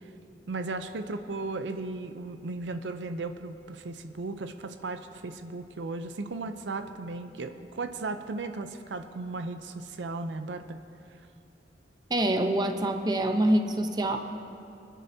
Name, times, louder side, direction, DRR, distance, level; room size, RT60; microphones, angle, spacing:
voice 1, 0.5-10.8, right 3 dB, 80° right, 8 dB, 0.6 m, -36 dB
voice 2, 12.1-14.2, right 1 dB, 25° right, 5 dB, 0.7 m, -25 dB
27.0 x 10.0 x 2.7 m, 2.6 s
head